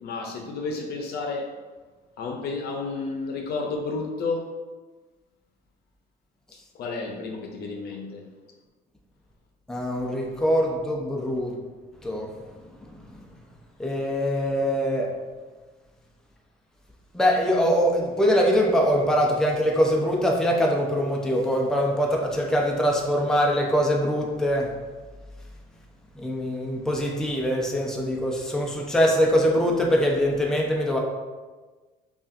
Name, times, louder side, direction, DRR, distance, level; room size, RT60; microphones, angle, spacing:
voice 1, 0.0-1.6 2.2-4.5 6.5-8.3, left 3 dB, 70° left, 1 dB, 0.7 m, -31 dB
voice 2, 9.7-11.6 12.0-12.3 12.8-13.2 13.8-15.1 17.1-24.7 26.2-31.0, equal, 5° left, -1 dB, 0.6 m, -23 dB
5.4 x 2.4 x 2.5 m, 1.3 s
cardioid pair, 110°, 17 cm